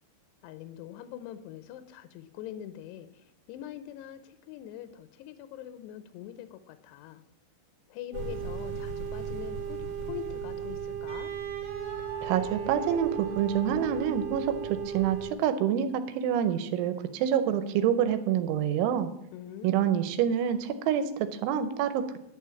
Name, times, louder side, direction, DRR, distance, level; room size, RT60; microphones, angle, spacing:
voice 1, 0.4-3.1 3.5-7.2 7.9-11.3 19.3-19.8, left 11 dB, 80° left, 10 dB, 2.5 m, -43 dB
sound 1, 8.1-15.3, right 7 dB, 55° right, 2.2 m, -36 dB
Wind instrument woodwind instrument, 11.1-15.1, right 7 dB, 35° right, 1.9 m, -43 dB
voice 2, 12.2-19.1 19.6-22.2, right 9 dB, 85° right, 10 dB, 3.0 m, -27 dB
11.5 x 4.7 x 8.2 m, 0.79 s
omnidirectional pair, 5.5 m